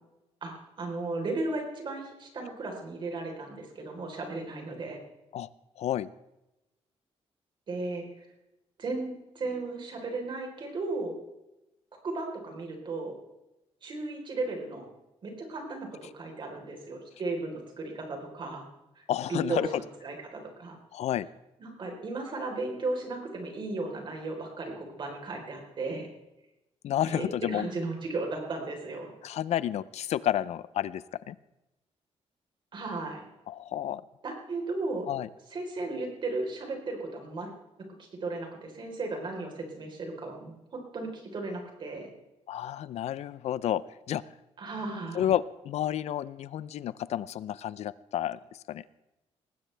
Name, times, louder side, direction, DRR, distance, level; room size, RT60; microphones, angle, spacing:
voice 1, 0.4-5.0 7.7-8.3 8.8-11.2 12.0-13.2 13.8-14.8 15.2-18.6 19.0-19.1 19.3-20.8 21.6-26.1 27.1-29.1 32.7-33.2 34.2-35.1 35.5-37.5 38.0-42.1 44.6-45.3, right 3 dB, 45° right, 2 dB, 4.0 m, -35 dB
voice 2, 5.8-6.1 19.1-19.7 20.9-21.3 26.8-27.7 29.2-31.4 33.5-34.0 35.1-35.3 42.5-43.8 44.1-44.2 45.1-48.4 48.7-48.8, left 11 dB, 70° left, 18 dB, 0.6 m, -30 dB
19.5 x 16.0 x 3.4 m, 0.95 s
cardioid pair, 145°, 11 cm